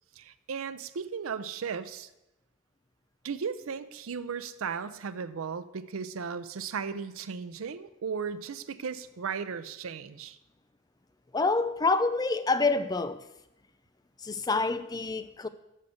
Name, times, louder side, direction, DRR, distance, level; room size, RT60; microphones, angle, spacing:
voice 1, 0.2-2.1 3.2-10.4, right 6 dB, 85° right, 0.5 m, -36 dB
voice 2, 11.3-13.2 14.2-15.5, left 3 dB, 20° left, 0.3 m, -27 dB
6.5 x 6.4 x 7.0 m
head